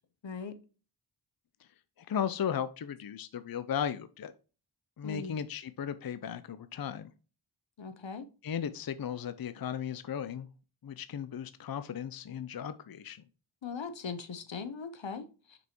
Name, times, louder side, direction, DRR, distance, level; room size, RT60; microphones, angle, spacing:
voice 1, 0.2-0.6 5.0-5.3 7.8-8.3 13.6-15.6, left 5 dB, 75° left, 0.8 m, -40 dB
voice 2, 2.0-4.3 5.0-7.1 8.4-10.5 10.8-13.2, left 8 dB, 55° left, 0.5 m, -36 dB
6.2 x 5.3 x 2.9 m
wide cardioid pair, 40°, 45 cm